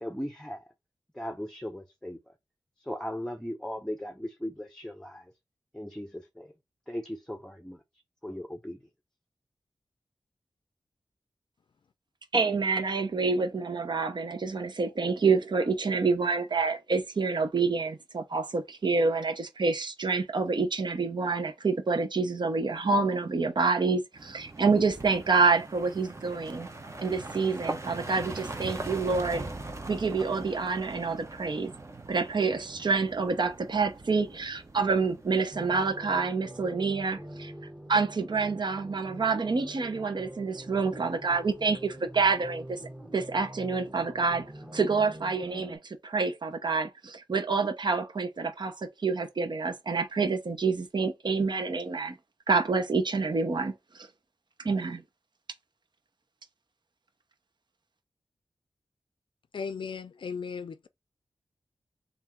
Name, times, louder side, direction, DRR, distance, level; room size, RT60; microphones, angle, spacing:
voice 1, 0.0-0.6 1.2-2.3 2.8-5.2 5.7-6.5 6.9-7.8 8.2-8.8, equal, 5° left, 0.7 m, -37 dB
voice 2, 12.3-26.7 27.0-29.5 29.9-31.7 32.1-37.5 37.9-42.8 43.1-52.2 52.5-54.1 54.6-55.0, right 4 dB, 60° right, 0.9 m, -27 dB
sound 1, 24.1-36.0, right 2 dB, 35° right, 0.9 m, -41 dB
sound 2, 35.5-45.8, right 1 dB, 15° right, 1.2 m, -45 dB
voice 3, 59.5-60.9, left 5 dB, 75° left, 0.4 m, -36 dB
3.4 x 2.6 x 4.4 m
cardioid pair, 55°, 9 cm